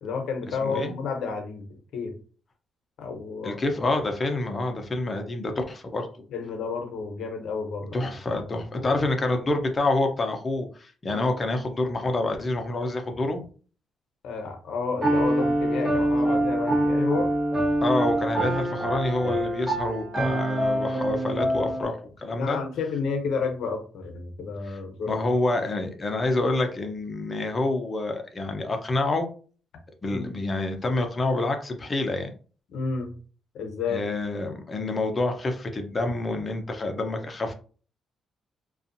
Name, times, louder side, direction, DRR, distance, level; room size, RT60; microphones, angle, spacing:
voice 1, 0.0-2.2 3.0-3.6 6.3-8.0 8.3-8.9 11.1-11.2 14.2-17.3 22.4-25.2 30.1-30.4 32.7-33.1 33.5-34.1, left 5 dB, 75° left, 4 dB, 0.7 m, -31 dB
voice 2, 0.6-0.9 3.4-6.1 7.9-13.4 17.8-22.6 24.7-24.8 25.1-29.3 30.0-32.3 33.9-37.5, left 2 dB, 30° left, 4 dB, 0.6 m, -27 dB
Piano, 15.0-21.8, right 1 dB, 35° right, 1.1 m, -25 dB
2.5 x 2.3 x 2.6 m, 0.39 s
cardioid pair, 90°, 0 cm